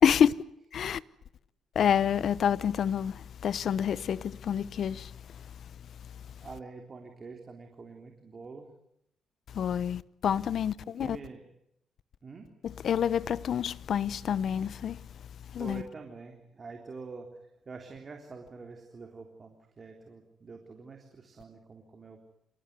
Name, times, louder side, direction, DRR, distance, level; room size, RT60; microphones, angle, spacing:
voice 1, 0.0-0.3 0.7-1.0 1.7-5.1 9.5-11.2 12.6-15.0 15.5-15.8, left 8 dB, 60° left, 0.9 m, -27 dB
voice 2, 6.4-8.7 10.8-11.4 12.2-12.5 15.6-17.3 17.6-22.3, right 4 dB, 35° right, 3.5 m, -46 dB
27.5 x 19.0 x 9.6 m
cardioid pair, 90°, 0 cm